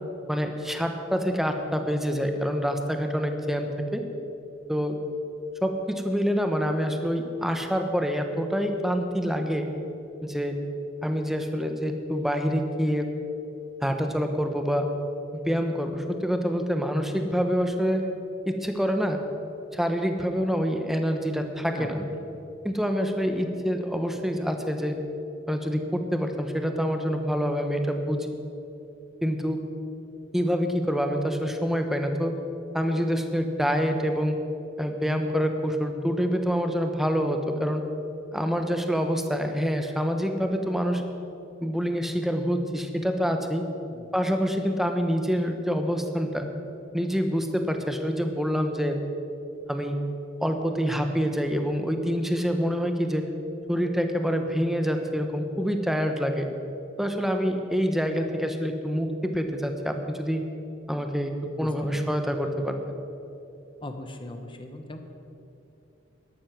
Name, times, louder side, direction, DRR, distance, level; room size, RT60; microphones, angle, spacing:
voice 1, 0.3-4.0 4.7-5.0 5.6-9.7 10.2-10.6 11.0-13.1 13.8-14.9 15.3-18.0 18.5-19.2 19.7-22.0 22.6-25.0 25.5-28.3 29.2-29.6 30.3-32.3 32.7-34.4 34.8-37.8 38.3-41.0 41.6-43.6 44.1-46.5 46.9-49.0 49.7-50.0 50.4-53.3 53.7-56.5 57.0-60.4 60.9-61.3 61.6-62.8, equal, ahead, 5 dB, 1.0 m, -26 dB
voice 2, 21.7-22.2 43.8-44.1 61.6-62.1 63.8-65.0, left 1 dB, 25° left, 6 dB, 1.0 m, -39 dB
12.5 x 12.0 x 6.0 m, 2.8 s
head